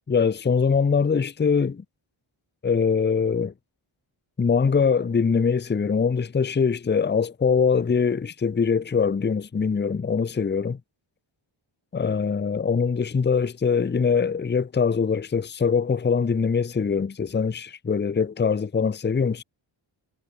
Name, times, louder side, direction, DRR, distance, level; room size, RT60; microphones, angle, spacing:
voice 1, 0.1-1.8 2.6-3.5 4.4-10.8 11.9-19.4, left 5 dB, 25° left, 0.7 m, -23 dB
wide cardioid pair, 140°, 48 cm